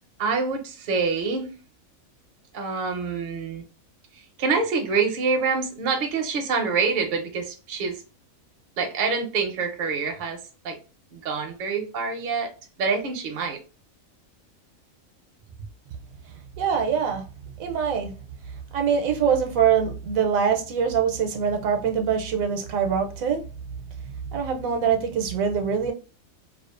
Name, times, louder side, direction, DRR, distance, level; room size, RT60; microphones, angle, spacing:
voice 1, 0.2-1.5 2.5-3.6 4.4-8.0 8.8-10.4 10.6-10.8 11.2-12.5 12.8-13.6, right 4 dB, 50° right, 0.6 m, -26 dB
voice 2, 16.6-17.2 17.6-18.1 18.7-23.4 24.3-25.9, right 7 dB, 80° right, 1.0 m, -23 dB
2.5 x 2.3 x 2.4 m
omnidirectional pair, 1.4 m